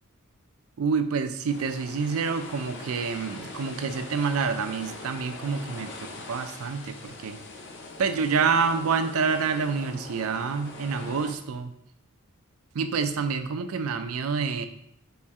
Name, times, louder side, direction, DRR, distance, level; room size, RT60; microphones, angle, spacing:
voice 1, 0.8-7.4 8.0-11.7 12.7-14.7, right 5 dB, 85° right, 8 dB, 0.4 m, -27 dB
sound 1, 1.5-11.3, left 2 dB, 55° left, 0.6 m, -42 dB
4.3 x 3.1 x 3.5 m, 0.73 s
head